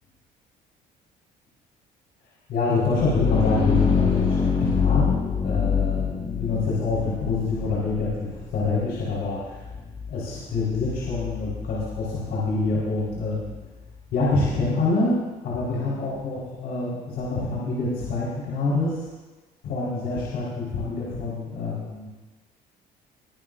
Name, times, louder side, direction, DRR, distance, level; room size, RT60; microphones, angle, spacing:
voice 1, 2.5-5.1 5.4-9.6 10.1-13.5 14.1-15.2 15.4-19.0 19.6-22.1, left 3 dB, 70° left, -7 dB, 4.5 m, -26 dB
sound 1, 2.9-14.4, left 6 dB, 35° left, 4.0 m, -27 dB
21.5 x 10.0 x 2.7 m, 1.3 s
cardioid pair, 110°, 17 cm